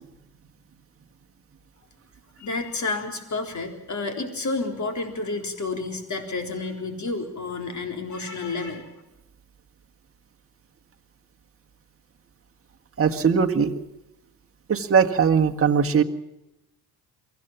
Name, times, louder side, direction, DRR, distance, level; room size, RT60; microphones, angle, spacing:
voice 1, 2.4-8.9, left 3 dB, 35° left, 5 dB, 3.9 m, -30 dB
voice 2, 13.0-13.7 14.7-16.0, right 6 dB, 25° right, 3 dB, 1.7 m, -20 dB
24.0 x 15.0 x 7.3 m, 0.92 s
hypercardioid pair, 50°, 49 cm